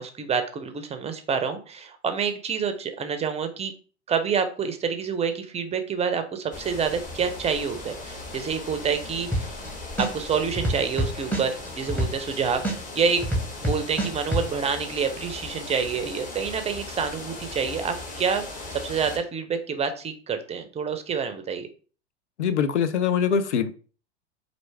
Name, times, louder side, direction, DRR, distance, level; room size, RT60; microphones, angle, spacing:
voice 1, 0.0-3.7 4.1-9.5 10.0-12.6 12.9-13.2 13.6-18.4 18.7-21.7, right 6 dB, 20° right, 0.5 m, -27 dB
sound 1, 6.5-19.2, left 2 dB, 25° left, 1.3 m, -38 dB
sound 2, 9.3-9.7 10.0-12.3 12.6-14.4, right 1 dB, 5° left, 1.0 m, -25 dB
voice 2, 22.4-23.7, left 7 dB, 85° left, 0.5 m, -23 dB
4.4 x 2.5 x 3.3 m
hypercardioid pair, 90°, 34 cm